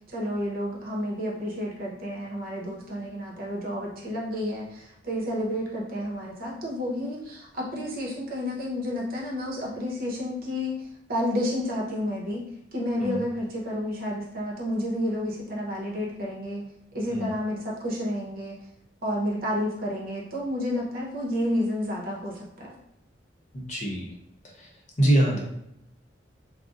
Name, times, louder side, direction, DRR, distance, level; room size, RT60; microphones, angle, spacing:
voice 1, 0.1-12.5 12.7-16.6 16.9-18.6 19.0-22.7, left 1 dB, 55° right, -3 dB, 0.8 m, -30 dB
voice 2, 23.5-24.1 24.6-24.7 25.0-25.4, right 1 dB, 40° left, -2 dB, 0.7 m, -24 dB
2.5 x 2.0 x 3.7 m, 0.83 s
head